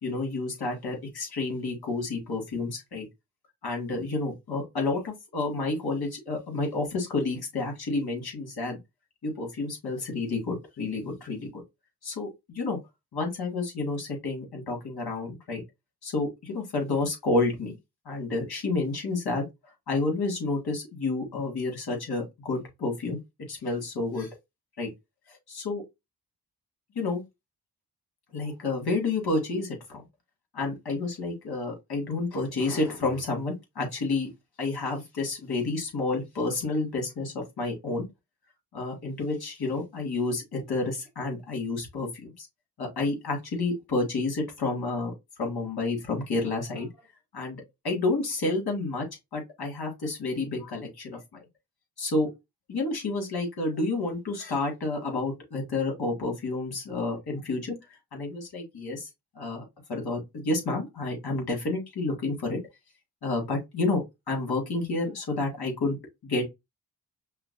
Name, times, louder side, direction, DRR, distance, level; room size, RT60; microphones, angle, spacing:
voice 1, 0.0-3.1 3.6-8.8 9.2-11.6 12.0-12.8 13.1-15.6 16.0-17.8 18.1-19.5 19.9-23.2 23.5-24.3 24.8-24.9 25.5-25.8 27.0-27.2 28.3-30.0 30.5-34.3 34.6-38.1 38.7-42.5 42.8-45.1 45.4-46.9 47.3-49.1 49.3-51.4 52.0-52.3 52.7-57.7 58.1-59.1 59.4-59.6 59.9-62.6 63.2-66.0 66.2-66.4, left 3 dB, 60° left, 2.3 m, -30 dB
5.6 x 2.2 x 2.7 m
supercardioid pair, 40°, 41 cm